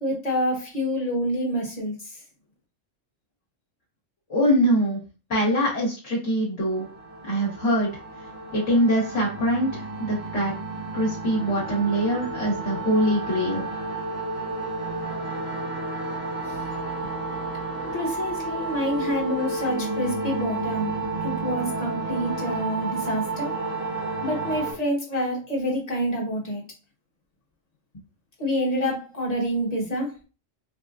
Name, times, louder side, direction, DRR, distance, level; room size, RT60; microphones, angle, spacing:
voice 1, 0.0-2.2 17.9-20.9 21.2-23.5 24.2-26.6 28.4-30.1, equal, 30° left, 0 dB, 1.2 m, -27 dB
voice 2, 4.3-5.0 5.3-6.9 7.2-7.9 8.5-10.5 10.9-13.6, equal, 70° left, -5 dB, 1.8 m, -23 dB
sound 1, 6.7-24.7, right 3 dB, 55° right, 1.3 m, -31 dB
5.0 x 2.2 x 2.5 m, 0.32 s
omnidirectional pair, 1.3 m